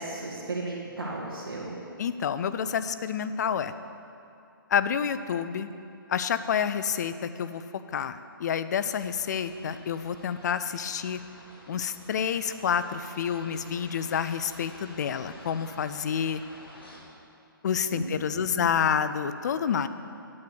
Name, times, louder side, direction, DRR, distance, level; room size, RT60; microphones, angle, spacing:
voice 1, 0.0-1.8 17.9-18.7, right 2 dB, 75° right, -5 dB, 1.8 m, -35 dB
voice 2, 2.0-3.7 4.7-5.7 6.1-11.2 11.7-16.4 17.6-19.9, left 7 dB, 50° left, 12 dB, 0.5 m, -28 dB
sound 1, 8.7-17.0, left 1 dB, 85° left, 2.3 m, -50 dB
8.6 x 6.7 x 7.9 m, 2.5 s
hypercardioid pair, 145°, 12 cm